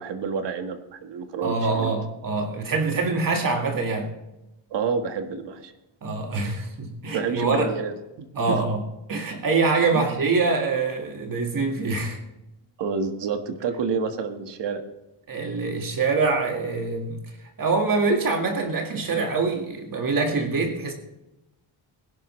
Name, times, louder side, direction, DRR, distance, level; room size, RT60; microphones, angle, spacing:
voice 1, 0.0-2.0 4.7-5.7 7.1-8.6 9.9-10.0 12.8-14.8, right 5 dB, 60° right, 1.7 m, -29 dB
voice 2, 1.4-4.1 6.0-7.7 8.4-8.8 9.1-12.2 15.3-17.2 17.6-20.9, right 4 dB, 40° right, 1.9 m, -24 dB
20.5 x 11.5 x 3.2 m
cardioid pair, 145°, 48 cm